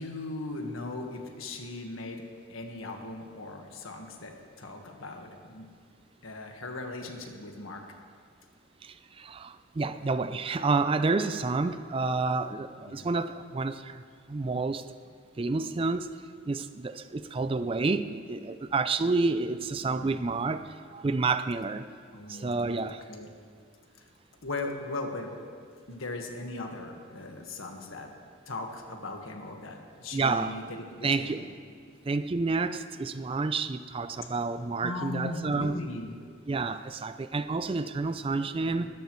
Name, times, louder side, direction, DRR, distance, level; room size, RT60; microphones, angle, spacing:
voice 1, 0.0-5.7 6.2-7.9 12.7-13.1 19.8-20.4 22.1-22.6 22.8-23.3 24.4-25.4 25.9-28.1 28.5-31.4 34.8-36.1 37.7-37.8 38.6-38.9, left 2 dB, 85° left, 3 dB, 1.5 m, -38 dB
voice 2, 8.8-14.0 14.3-14.8 15.4-16.1 16.5-21.9 22.3-23.0 30.1-30.6 31.0-31.5 32.1-35.7 36.5-38.9, right 3 dB, 25° right, 11 dB, 0.4 m, -29 dB
20.5 x 13.5 x 3.1 m, 2.1 s
head